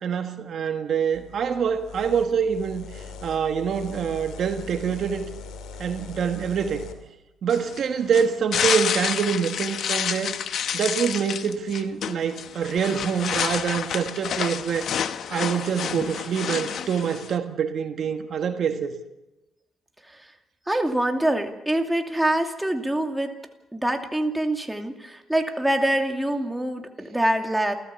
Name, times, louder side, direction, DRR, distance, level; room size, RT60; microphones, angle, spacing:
voice 1, 0.0-5.3 5.8-6.8 7.4-10.3 10.7-14.9 15.3-18.9, right 7 dB, 65° right, 6 dB, 1.6 m, -25 dB
sound 1, 1.1-6.9, left 4 dB, 90° left, 2.9 m, -41 dB
sound 2, 7.5-17.4, left 8 dB, 70° left, 1.1 m, -29 dB
voice 2, 20.7-23.3 23.7-27.7, right 1 dB, 5° right, 3 dB, 2.6 m, -25 dB
28.5 x 14.5 x 7.1 m, 0.99 s
cardioid pair, 90°, 0 cm